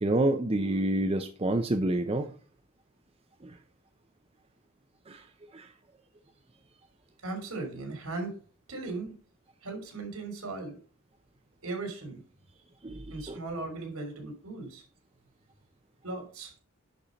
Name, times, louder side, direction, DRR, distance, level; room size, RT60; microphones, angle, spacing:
voice 1, 0.0-2.3 5.1-5.2 5.5-5.7 12.8-13.0 13.3-13.4, right 1 dB, 25° right, 7 dB, 0.5 m, -27 dB
voice 2, 7.2-8.3 8.7-9.1 9.6-10.8 11.6-12.2 13.1-14.8 16.0-16.5, right 3 dB, 80° right, 4 dB, 3.1 m, -37 dB
10.5 x 4.3 x 5.1 m, 0.41 s
head